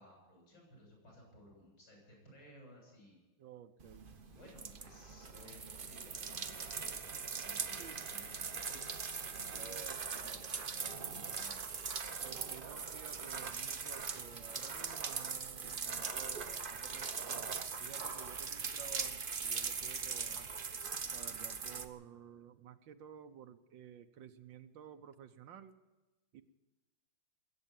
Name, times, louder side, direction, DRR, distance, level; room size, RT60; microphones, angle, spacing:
voice 1, 0.0-3.2 4.2-9.0 9.3-11.7, left 1 dB, 60° left, -1 dB, 8.4 m, -58 dB
voice 2, 3.4-4.1 7.8-8.0 9.6-10.3 12.2-20.5 21.1-25.8 26.3-26.4, right 9 dB, 70° right, 9 dB, 1.4 m, -53 dB
sound 1, 3.8-21.9, right 5 dB, 45° right, 0.7 m, -41 dB
21.5 x 8.8 x 7.3 m, 1.1 s
omnidirectional pair, 2.2 m